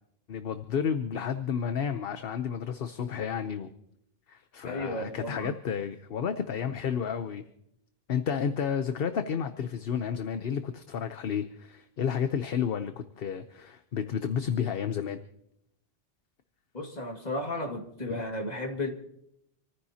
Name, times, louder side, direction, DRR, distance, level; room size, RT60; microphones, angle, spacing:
voice 1, 0.3-3.7 4.3-7.4 8.1-15.2 18.1-18.2, left 7 dB, 65° left, 9 dB, 1.0 m, -31 dB
voice 2, 4.6-5.5 16.7-18.9, left 1 dB, 40° left, 2 dB, 2.2 m, -34 dB
27.0 x 14.5 x 2.8 m, 0.76 s
omnidirectional pair, 1.1 m